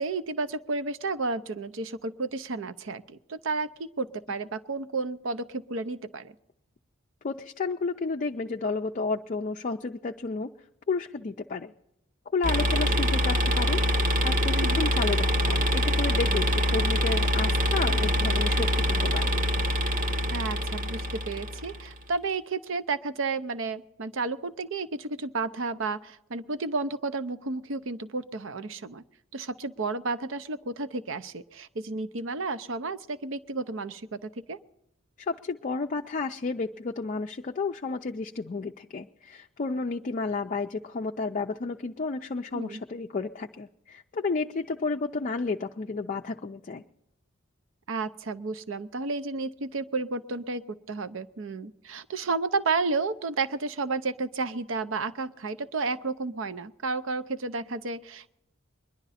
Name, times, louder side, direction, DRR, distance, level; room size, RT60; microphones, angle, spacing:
voice 1, 0.0-6.3 14.5-14.8 20.3-29.0 29.3-34.6 42.5-42.8 47.9-50.6 50.9-58.3, right 3 dB, 65° right, 14 dB, 0.6 m, -32 dB
voice 2, 7.2-10.5 10.9-11.7 12.3-19.4 35.2-46.8, left 4 dB, 40° left, 4 dB, 0.4 m, -32 dB
sound 1, 12.4-21.9, equal, 40° right, 1.0 m, -25 dB
22.0 x 11.0 x 4.1 m, 0.83 s
head